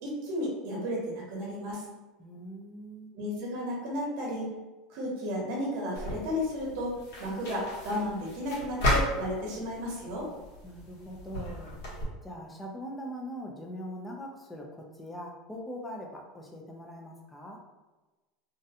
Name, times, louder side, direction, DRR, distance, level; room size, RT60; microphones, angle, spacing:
voice 1, 0.0-1.8 3.1-4.5 4.9-10.3, equal, 55° right, -2 dB, 0.8 m, -33 dB
voice 2, 2.2-3.1 10.6-11.8 12.2-17.6, equal, 5° left, 0 dB, 0.3 m, -42 dB
sound 1, 5.9-12.0, left 1 dB, 90° left, 1.0 m, -34 dB
2.4 x 2.1 x 2.7 m, 1.1 s
supercardioid pair, 175°, 0 cm